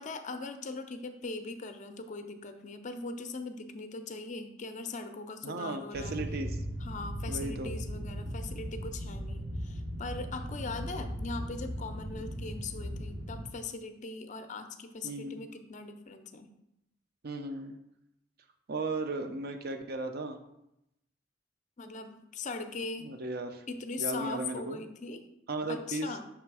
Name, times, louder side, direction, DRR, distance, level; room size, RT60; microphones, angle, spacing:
voice 1, 0.0-6.2 6.8-16.5 21.8-23.1 23.7-25.3 25.7-26.2, left 3 dB, 40° left, 8 dB, 0.5 m, -40 dB
voice 2, 5.4-6.5 7.3-7.7 15.0-15.4 17.2-17.8 18.7-20.4 23.0-23.6 24.0-24.8 25.5-26.1, right 2 dB, 55° right, 7 dB, 0.5 m, -35 dB
sound 1, 5.9-13.4, equal, 70° right, 0.9 m, -38 dB
6.1 x 3.3 x 4.7 m, 0.84 s
head